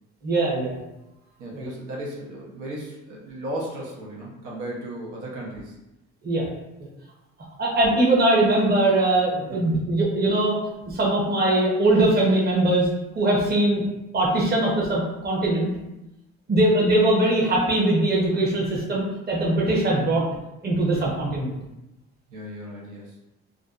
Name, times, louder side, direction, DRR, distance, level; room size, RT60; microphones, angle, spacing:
voice 1, 0.2-0.8 1.5-1.6 6.2-6.4 7.6-10.6 10.9-12.9 13.1-13.8 14.1-15.7 16.5-20.2 20.6-21.5, right 1 dB, 35° right, -3 dB, 0.8 m, -21 dB
voice 2, 1.4-5.8 9.5-9.7 22.3-23.2, right 1 dB, 85° right, -3 dB, 0.7 m, -35 dB
2.5 x 2.3 x 2.4 m, 0.94 s
cardioid pair, 90°, 30 cm